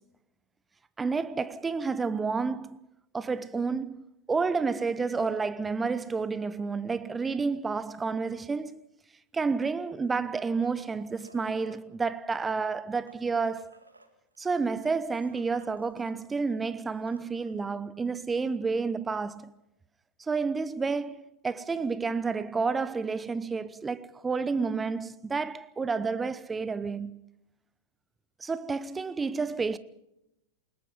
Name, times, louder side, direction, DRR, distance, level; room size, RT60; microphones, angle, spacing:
voice 1, 1.0-2.8 3.1-8.8 9.3-13.7 14.4-19.5 20.2-27.2 28.4-29.8, right 4 dB, 15° right, 0.8 m, -30 dB
sound 1, 9.9-11.8 12.4-16.2 16.5-16.6 16.8-17.6 19.1-19.2, right 2 dB, 85° right, 2.2 m, -57 dB
29.0 x 19.0 x 5.5 m
figure-of-eight pair, 90°, 0 cm